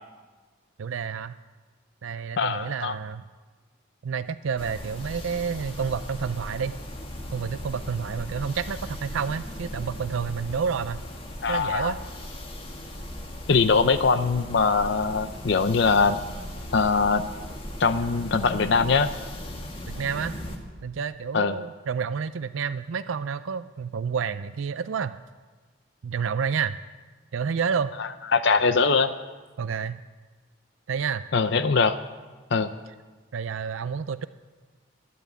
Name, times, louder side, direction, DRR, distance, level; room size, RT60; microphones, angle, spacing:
voice 1, 0.8-1.4 2.0-3.3 4.0-6.7 7.3-11.0 11.5-12.0 19.9-20.4 20.8-25.1 26.0-26.8 27.3-27.9 29.6-30.0 30.9-31.2 33.3-34.3, right 6 dB, 80° right, 13 dB, 0.4 m, -29 dB
voice 2, 2.4-3.0 11.4-11.9 13.5-16.2 16.7-17.2 17.8-19.1 21.3-21.6 28.0-29.1 31.3-32.0 32.5-32.7, left 4 dB, 60° left, 11 dB, 0.6 m, -22 dB
sound 1, 4.6-20.6, left 1 dB, 25° left, 1.6 m, -38 dB
12.5 x 10.5 x 8.3 m, 1.3 s
head